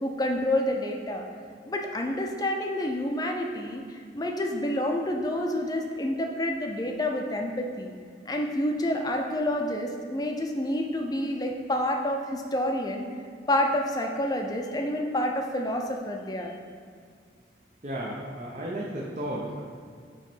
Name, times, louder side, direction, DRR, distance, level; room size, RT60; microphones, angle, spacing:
voice 1, 0.0-1.2 1.7-3.8 4.1-7.9 8.3-13.1 13.5-16.5, left 1 dB, 20° left, 2 dB, 0.6 m, -28 dB
voice 2, 17.8-19.6, right 1 dB, 40° right, -4 dB, 0.7 m, -33 dB
9.2 x 3.1 x 4.5 m, 2.2 s
head